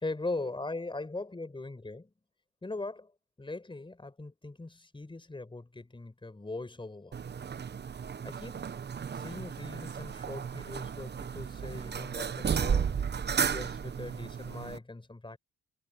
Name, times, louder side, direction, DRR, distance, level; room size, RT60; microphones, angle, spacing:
voice 1, 0.0-2.1 2.6-3.1 3.4-7.1 8.2-8.7 9.1-13.1 13.5-15.4, left 2 dB, 15° left, 5.0 m, -40 dB
sound 1, 7.1-14.8, right 7 dB, 35° right, 0.9 m, -34 dB
cardioid pair, 90°, 30 cm